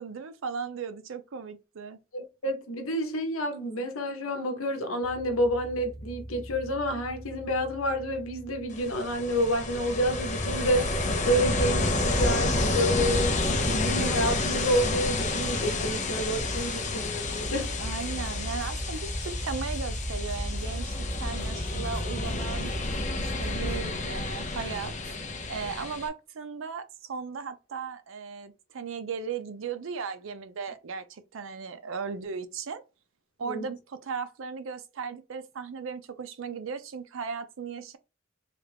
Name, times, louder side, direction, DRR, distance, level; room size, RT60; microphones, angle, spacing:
voice 1, 0.0-2.0 17.8-22.7 23.2-24.9 25.5-32.8 33.4-38.0, right 5 dB, 70° right, 0.5 m, -36 dB
voice 2, 2.1-13.3 13.6-17.7 33.4-33.7, equal, 85° left, 0.8 m, -29 dB
sound 1, 5.0-23.5, right 1 dB, 20° right, 0.5 m, -41 dB
Ocean, 8.7-26.1, left 2 dB, 35° left, 0.5 m, -30 dB
sound 2, 16.4-23.8, equal, 5° left, 1.0 m, -37 dB
3.2 x 2.3 x 3.4 m
head